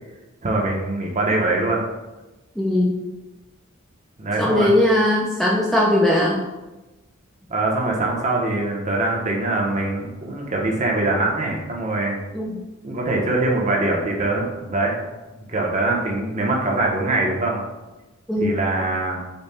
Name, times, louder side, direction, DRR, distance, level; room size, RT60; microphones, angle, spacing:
voice 1, 0.4-1.8 4.2-4.7 7.5-12.2 12.8-15.1 15.5-17.6 18.4-19.2, right 2 dB, 35° right, -1 dB, 0.8 m, -23 dB
voice 2, 2.6-2.9 4.4-6.4 12.3-12.6 18.3-18.5, left 1 dB, ahead, -5 dB, 0.5 m, -19 dB
5.3 x 2.3 x 4.2 m, 1.1 s
head